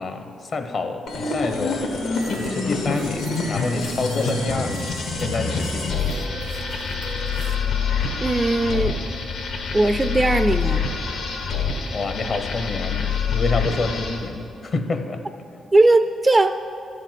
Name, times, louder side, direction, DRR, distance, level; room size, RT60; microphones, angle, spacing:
voice 1, 0.0-1.9 2.4-6.1 11.9-15.2, left 3 dB, 50° left, 7 dB, 0.8 m, -28 dB
sound 1, 1.1-14.3, left 5 dB, 80° left, 1.4 m, -26 dB
sound 2, 2.1-7.6, right 4 dB, 85° right, 0.7 m, -39 dB
voice 2, 8.2-8.9 9.7-10.8 15.7-16.5, right 2 dB, 20° right, 8 dB, 0.3 m, -18 dB
13.0 x 4.9 x 7.6 m, 2.8 s
cardioid pair, 115°, 0 cm